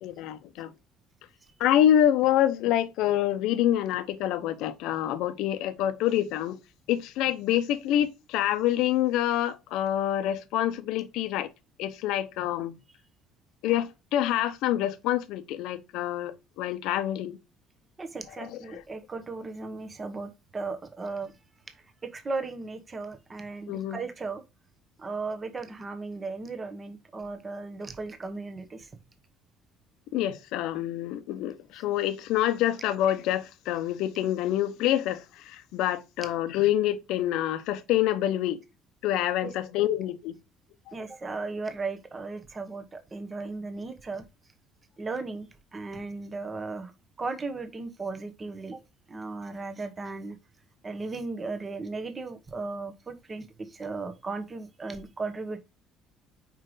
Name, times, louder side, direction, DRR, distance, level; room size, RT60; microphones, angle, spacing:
voice 1, 0.0-0.7 1.6-6.6 6.9-11.5 11.8-12.7 13.6-17.4 18.7-18.8 23.7-24.0 30.1-38.6 39.0-40.3, left 12 dB, 75° left, 0.7 m, -26 dB
voice 2, 18.0-21.3 22.0-24.4 25.0-28.9 31.7-31.8 39.4-39.5 40.9-44.2 45.0-46.9 47.2-48.8 49.1-50.4 50.8-55.6, right 3 dB, 20° right, 1.0 m, -36 dB
5.0 x 4.6 x 4.9 m
cardioid pair, 135°, 0 cm